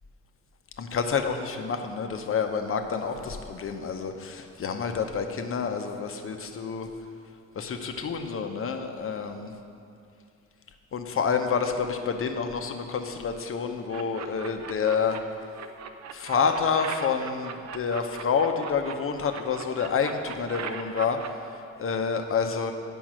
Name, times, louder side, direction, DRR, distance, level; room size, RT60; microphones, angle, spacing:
voice 1, 0.8-6.9 7.6-9.5 10.9-15.2 16.1-21.2 21.8-22.7, left 6 dB, 45° left, 5 dB, 0.8 m, -28 dB
sound 1, 13.9-15.2 15.5-18.9 19.3-21.3, right 7 dB, 65° right, 0.7 m, -38 dB
8.9 x 5.4 x 6.2 m, 2.5 s
cardioid pair, 90°, 30 cm